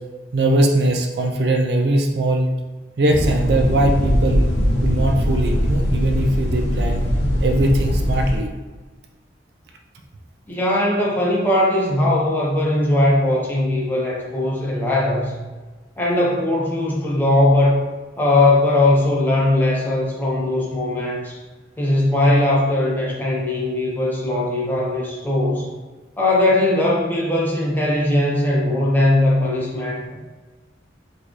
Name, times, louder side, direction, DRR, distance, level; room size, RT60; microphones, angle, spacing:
voice 1, 0.3-2.5 3.0-4.5 4.8-7.0 7.4-8.5, right 1 dB, 65° right, 2 dB, 0.4 m, -20 dB
sound 1, 3.1-8.4, equal, 75° left, 0.7 m, -21 dB
voice 2, 10.5-15.3 16.0-17.8 18.2-21.4 21.8-25.7 26.2-30.1, left 1 dB, 10° left, -5 dB, 0.7 m, -19 dB
4.5 x 2.3 x 3.1 m, 1.3 s
head